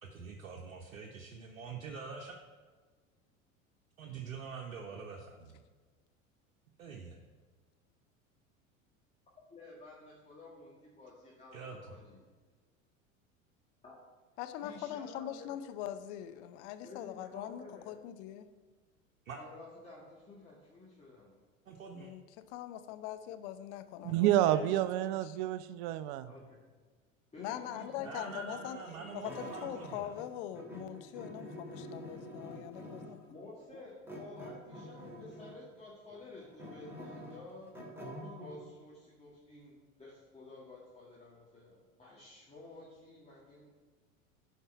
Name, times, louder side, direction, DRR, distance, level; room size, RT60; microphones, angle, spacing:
voice 1, 0.0-2.4 4.0-5.6 6.8-7.3 11.5-12.0 19.2-19.4 21.7-22.1 24.1-24.6 28.0-30.1, right 5 dB, 75° right, 1 dB, 1.1 m, -45 dB
voice 2, 9.5-12.2 13.8-13.9 14.6-15.5 16.8-17.9 19.4-21.3 26.2-26.6 27.3-28.4 33.3-37.7 38.2-43.7, left 2 dB, 15° left, -7 dB, 2.2 m, -52 dB
voice 3, 14.4-18.5 21.9-25.4 27.4-28.8 29.1-33.2 33.7-33.8, left 11 dB, 55° left, 10 dB, 0.9 m, -42 dB
voice 4, 24.0-26.3, right 13 dB, 50° right, 14 dB, 0.6 m, -29 dB
sound 1, 27.4-30.3 30.5-33.2 34.1-35.6 36.1-38.6, equal, 5° right, 2.9 m, -47 dB
11.0 x 4.6 x 5.7 m, 1.4 s
hypercardioid pair, 80°, 40 cm